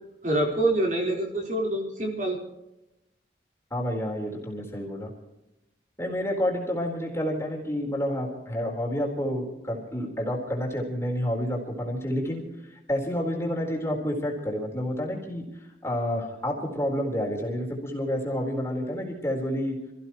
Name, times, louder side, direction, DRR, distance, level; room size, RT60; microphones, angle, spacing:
voice 1, 0.2-2.4, right 1 dB, 45° right, -1 dB, 4.2 m, -26 dB
voice 2, 3.7-5.1 6.0-12.4 12.7-15.4 15.8-19.8, equal, 15° left, -1 dB, 4.1 m, -29 dB
28.5 x 15.5 x 3.1 m, 0.91 s
head